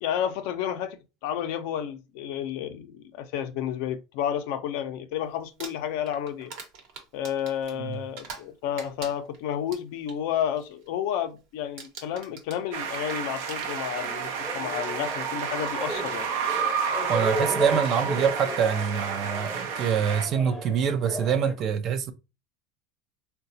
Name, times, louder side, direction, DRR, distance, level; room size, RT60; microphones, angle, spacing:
voice 1, 0.0-1.0 1.2-6.5 7.1-16.3, left 9 dB, 70° left, 0.5 m, -31 dB
Crumpling crinkling, 5.4-8.5 8.8-10.2 10.6-10.9 11.1-11.5 11.8-14.2 15.1-15.2 17.2-17.3 17.7-18.0, right 5 dB, 65° right, 1.0 m, -44 dB
sound 1, 12.7-20.3, right 7 dB, 80° right, 0.6 m, -30 dB
sound 2, 13.9-21.5, left 1 dB, 10° left, 0.7 m, -35 dB
voice 2, 17.1-22.1, right 7 dB, 40° right, 0.5 m, -25 dB
3.8 x 2.2 x 2.7 m
supercardioid pair, 130°, 0 cm